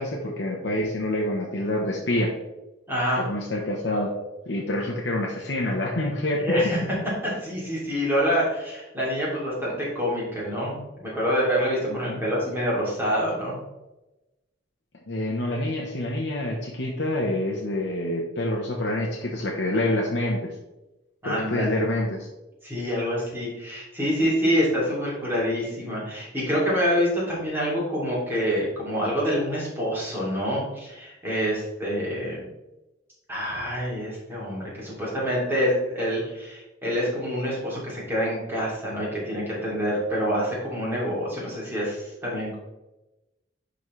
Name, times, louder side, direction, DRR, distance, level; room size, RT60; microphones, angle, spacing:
voice 1, 0.0-2.3 3.2-4.1 4.5-6.5 11.9-12.2 15.1-20.5 21.2-22.3, left 1 dB, 65° left, -1 dB, 1.0 m, -27 dB
voice 2, 2.9-3.2 6.4-6.8 7.2-13.6 21.2-21.8 22.6-32.4 33.3-42.5, equal, 10° right, -6 dB, 2.7 m, -26 dB
11.0 x 4.1 x 3.2 m, 0.99 s
head